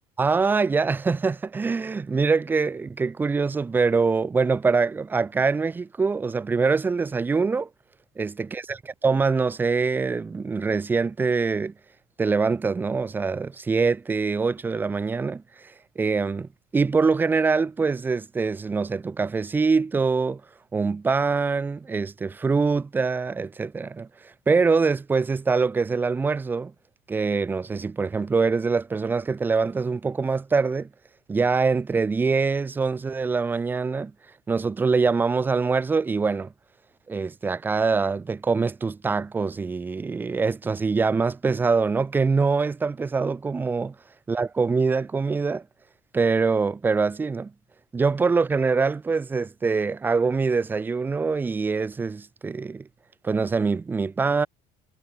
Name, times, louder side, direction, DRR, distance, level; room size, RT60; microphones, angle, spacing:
voice 1, 0.2-7.7 8.2-11.7 12.2-20.4 20.7-26.7 27.1-30.9 31.3-34.1 34.5-36.5 37.1-44.0 44.3-45.6 46.1-47.5 47.9-52.9 53.2-54.5, right 4 dB, 10° right, 0.4 m, -24 dB
cardioid pair, 175°, 18 cm